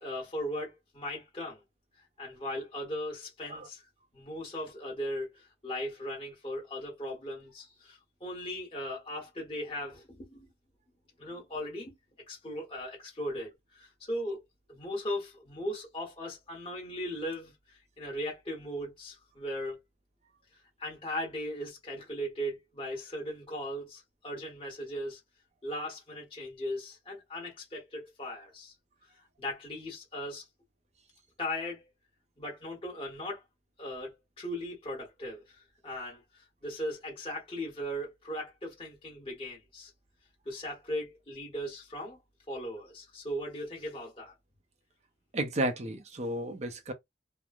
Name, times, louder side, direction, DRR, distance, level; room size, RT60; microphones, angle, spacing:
voice 1, 0.0-1.6 2.2-3.8 4.1-10.5 11.2-11.9 12.3-14.4 14.7-19.8 20.8-25.2 25.6-28.7 29.4-30.4 31.4-31.8 32.4-33.4 33.8-35.4 35.8-36.2 36.6-39.9 40.4-42.2 42.5-44.3, equal, 30° left, 1.2 m, -38 dB
voice 2, 45.3-46.9, right 1 dB, 40° right, 0.6 m, -32 dB
3.0 x 2.2 x 2.4 m
head